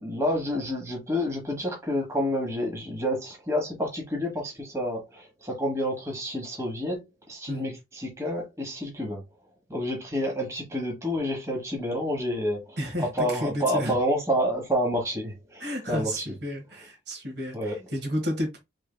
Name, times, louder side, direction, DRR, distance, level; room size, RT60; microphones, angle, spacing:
voice 1, 0.0-9.2 9.7-16.3 17.5-17.7, equal, 15° right, 1.2 m, -29 dB
voice 2, 12.8-13.9 15.6-18.6, equal, 65° right, 1.4 m, -32 dB
4.3 x 3.3 x 2.2 m
head